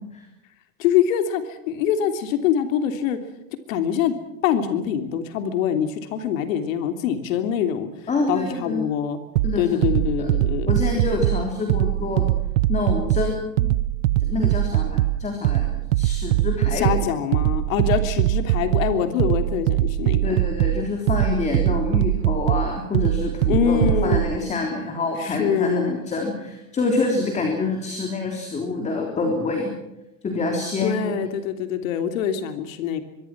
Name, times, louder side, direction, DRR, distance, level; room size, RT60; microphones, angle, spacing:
voice 1, 0.8-3.2 3.7-4.1 4.4-7.9 8.3-9.2 9.6-10.8 16.7-20.3 23.5-24.3 25.2-25.9 30.8-33.0, left 9 dB, 80° left, 7 dB, 3.2 m, -24 dB
voice 2, 8.1-8.8 9.4-9.8 10.2-10.3 10.6-12.3 12.7-13.7 14.2-17.1 20.2-29.7 30.2-31.3, left 3 dB, 15° left, 2 dB, 3.5 m, -26 dB
sound 1, 9.4-24.4, right 15 dB, 75° right, 0.8 m, -22 dB
24.5 x 23.0 x 6.1 m, 0.91 s
supercardioid pair, 165°, 39 cm